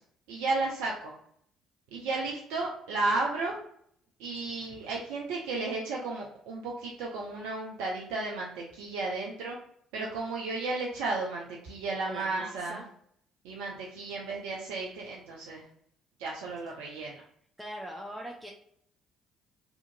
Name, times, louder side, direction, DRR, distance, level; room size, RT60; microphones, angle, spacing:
voice 1, 0.3-1.1 1.9-3.6 4.2-9.6 9.9-12.8 13.4-15.6 16.2-17.2, right 3 dB, 70° right, -2 dB, 0.4 m, -33 dB
voice 2, 12.0-12.9 17.6-18.5, right 1 dB, 10° right, -1 dB, 0.5 m, -41 dB
2.7 x 2.4 x 2.5 m, 0.69 s
hypercardioid pair, 50°, 0 cm